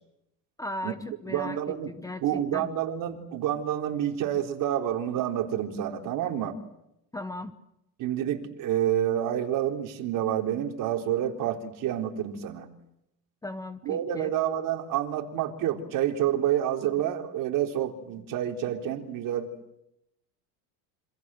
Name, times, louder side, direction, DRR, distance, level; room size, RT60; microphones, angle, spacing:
voice 1, 0.6-1.6 1.9-2.7 7.1-7.6 13.4-14.3, left 1 dB, 10° left, 10 dB, 1.0 m, -37 dB
voice 2, 1.3-1.9 2.2-6.6 8.0-12.7 13.8-19.5, right 11 dB, 50° right, 4 dB, 4.0 m, -28 dB
27.0 x 26.5 x 7.8 m, 0.83 s
cardioid pair, 155°, 43 cm